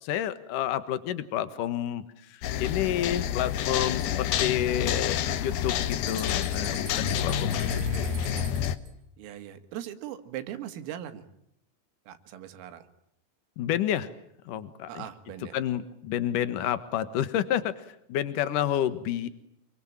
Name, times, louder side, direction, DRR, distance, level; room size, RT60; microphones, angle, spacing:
voice 1, 0.0-7.9 13.6-14.1 14.4-15.0 15.5-19.3, left 11 dB, 90° left, 14 dB, 1.8 m, -30 dB
sound 1, 2.4-8.8, left 9 dB, 65° left, 2.5 m, -28 dB
sound 2, 5.8-8.9, right 9 dB, 60° right, 5.4 m, -46 dB
voice 2, 7.3-8.6 9.2-11.3 12.1-12.9 14.9-15.6, right 11 dB, 80° right, 9 dB, 4.7 m, -40 dB
28.0 x 23.5 x 8.9 m, 0.75 s
omnidirectional pair, 5.9 m